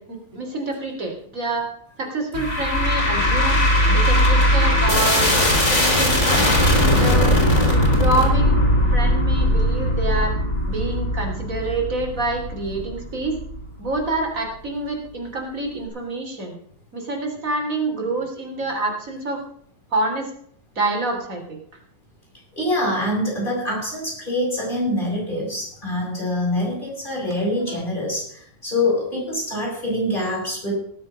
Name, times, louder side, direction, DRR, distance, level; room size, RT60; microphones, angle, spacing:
voice 1, 0.0-1.7 2.0-3.6 3.9-5.5 5.8-6.6 6.9-7.4 7.7-8.6 8.9-10.4 10.7-13.4 13.8-16.6 16.9-19.4 19.9-20.3 20.8-21.6 27.7-27.8, right 2 dB, 80° right, 1 dB, 3.8 m, -27 dB
sound 1, 2.3-13.6, left 1 dB, 60° left, 4.1 m, -19 dB
voice 2, 22.6-30.7, left 1 dB, 40° left, -3 dB, 7.9 m, -25 dB
19.5 x 7.3 x 5.3 m, 0.62 s
omnidirectional pair, 1.4 m